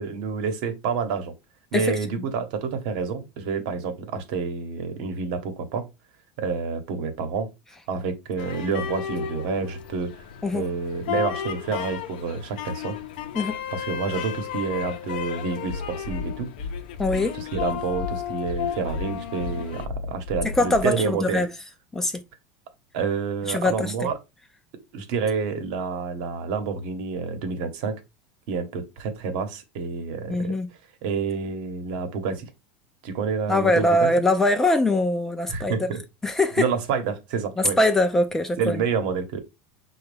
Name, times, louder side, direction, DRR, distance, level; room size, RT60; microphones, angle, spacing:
voice 1, 0.0-1.3 1.7-5.9 6.4-7.5 7.9-10.2 10.5-13.0 13.7-16.5 17.3-21.5 22.9-24.2 24.9-28.0 28.5-30.5 31.0-32.5 33.0-34.1 35.5-36.0 36.6-37.8 38.6-39.4, right 5 dB, 60° right, 0.9 m, -28 dB
sound 1, 8.4-19.9, left 9 dB, 85° left, 0.6 m, -34 dB
sound 2, 15.7-20.8, left 4 dB, 40° left, 0.9 m, -33 dB
voice 2, 17.0-17.3 20.5-21.5 21.9-22.2 23.5-24.1 30.3-30.7 33.5-35.8 36.2-36.7 37.6-38.8, left 2 dB, 10° left, 0.3 m, -22 dB
5.2 x 2.3 x 3.3 m
supercardioid pair, 160°, 5 cm